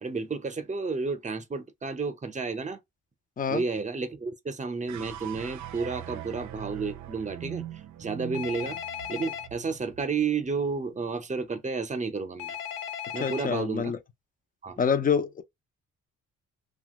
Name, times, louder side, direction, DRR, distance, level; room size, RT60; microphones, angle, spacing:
voice 1, 0.0-2.8 3.5-7.6 8.0-8.8 9.1-12.6 13.1-13.9 14.6-14.8, right 4 dB, 25° right, 0.8 m, -31 dB
sound 1, 4.9-11.3, right 12 dB, 70° right, 0.5 m, -42 dB
Telephone, 8.3-9.5 12.4-13.5, left 9 dB, 80° left, 0.6 m, -36 dB
voice 2, 13.2-14.0 14.8-15.4, left 6 dB, 30° left, 0.6 m, -26 dB
2.9 x 2.4 x 2.9 m
cardioid pair, 90°, 30 cm